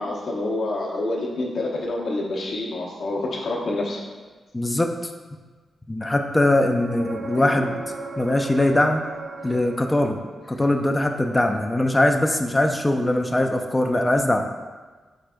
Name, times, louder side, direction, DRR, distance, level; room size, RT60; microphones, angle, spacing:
voice 1, 0.0-4.0 7.3-7.7 9.4-9.5, left 2 dB, 70° left, -2 dB, 0.7 m, -27 dB
voice 2, 4.5-5.1 5.9-7.7 8.2-9.0 9.4-10.2 10.5-14.5, left 1 dB, 20° left, 4 dB, 0.4 m, -21 dB
sound 1, 6.7-10.5 14.2-14.3, right 3 dB, 55° right, 0.4 m, -36 dB
4.5 x 4.0 x 2.2 m, 1.3 s
supercardioid pair, 45°, 0 cm